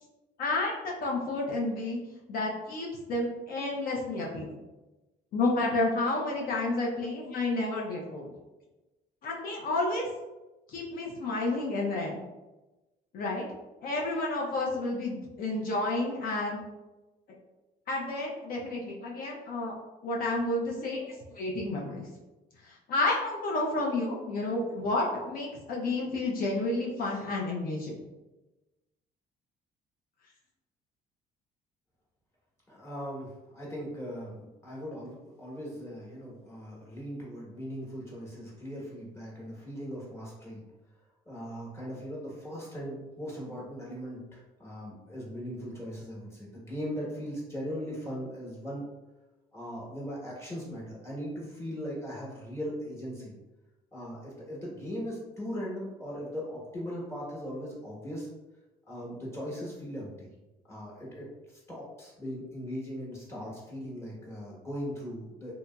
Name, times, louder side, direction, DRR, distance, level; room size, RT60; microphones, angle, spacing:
voice 1, 0.4-2.0 2.3-4.5 5.3-8.2 9.2-10.1 10.7-12.2 13.1-13.5 13.8-16.6 17.9-19.7 20.0-22.1 22.6-28.0, left 2 dB, 60° left, -2 dB, 0.6 m, -30 dB
voice 2, 32.7-40.6 41.3-48.9 49.5-53.3 53.9-58.3 58.9-60.3 60.7-61.3 61.7-65.5, equal, 15° left, -5 dB, 1.1 m, -39 dB
2.8 x 2.6 x 2.2 m, 1.1 s
cardioid pair, 110°, 17 cm